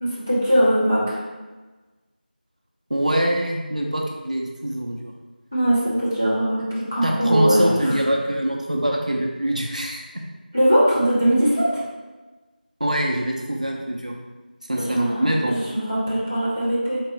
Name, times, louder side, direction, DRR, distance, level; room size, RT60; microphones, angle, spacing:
voice 1, 0.0-1.2 5.5-7.7 10.5-11.7 14.8-17.0, equal, 15° left, -10 dB, 0.6 m, -20 dB
voice 2, 2.9-5.1 7.0-10.2 12.8-14.1 14.7-15.6, right 1 dB, 45° right, 0 dB, 0.4 m, -24 dB
3.6 x 2.6 x 3.1 m, 1.2 s
figure-of-eight pair, 180°, 5 cm